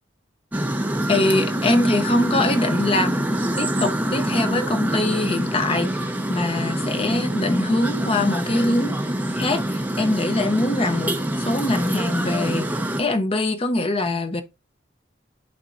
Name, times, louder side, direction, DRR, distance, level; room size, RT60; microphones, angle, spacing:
sound 1, 0.5-13.0, right 1 dB, 10° right, 0.8 m, -25 dB
voice 1, 1.1-6.0 6.3-9.0 9.3-12.7 13.0-14.4, left 2 dB, 30° left, 0.7 m, -23 dB
11.0 x 4.1 x 2.6 m
head